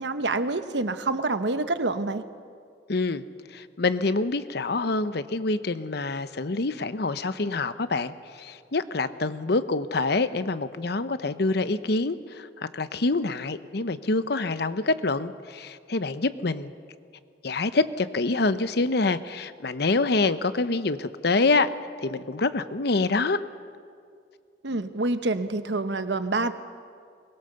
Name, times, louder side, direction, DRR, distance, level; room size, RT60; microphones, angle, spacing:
voice 1, 0.0-2.2 24.6-26.5, right 2 dB, 80° right, 10 dB, 1.0 m, -27 dB
voice 2, 2.9-3.2 3.5-16.7 17.4-21.7 22.0-23.4, left 3 dB, 65° left, 12 dB, 0.8 m, -26 dB
23.0 x 21.0 x 6.8 m, 2.2 s
head